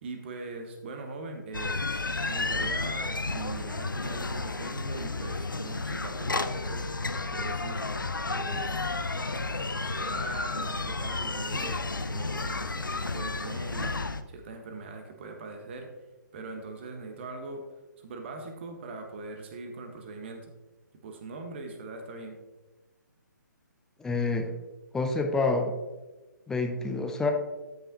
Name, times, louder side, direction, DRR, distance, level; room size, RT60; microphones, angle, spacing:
voice 1, 0.0-1.8 2.3-7.9 8.3-8.9 9.8-14.0 14.3-16.0 16.3-17.7 18.0-20.5 21.0-22.4, right 3 dB, 35° right, 5 dB, 1.3 m, -41 dB
sound 1, 1.5-14.2, left 3 dB, 80° left, 0.6 m, -32 dB
voice 2, 24.0-24.5 24.9-25.7 26.5-27.3, left 3 dB, 5° left, 4 dB, 0.5 m, -27 dB
13.0 x 5.6 x 2.8 m, 1.1 s
figure-of-eight pair, 135°, 11 cm